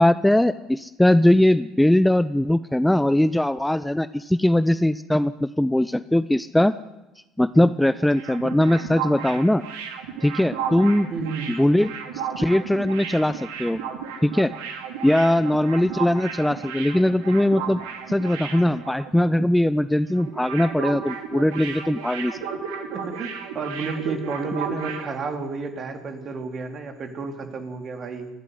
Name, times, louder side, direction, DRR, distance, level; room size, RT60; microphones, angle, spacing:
voice 1, 0.0-6.7 7.4-9.6 10.2-11.1 11.5-11.9 12.4-13.8 14.2-14.5 15.0-17.8 18.1-22.4, left 1 dB, 5° left, 15 dB, 0.8 m, -20 dB
sound 1, 7.9-19.4 19.7-19.9 20.2-25.1, right 7 dB, 70° right, 2.6 m, -34 dB
voice 2, 11.1-11.5 22.9-28.3, right 4 dB, 45° right, 6 dB, 3.7 m, -31 dB
28.5 x 12.5 x 9.7 m, 1.0 s
figure-of-eight pair, 55°, 0 cm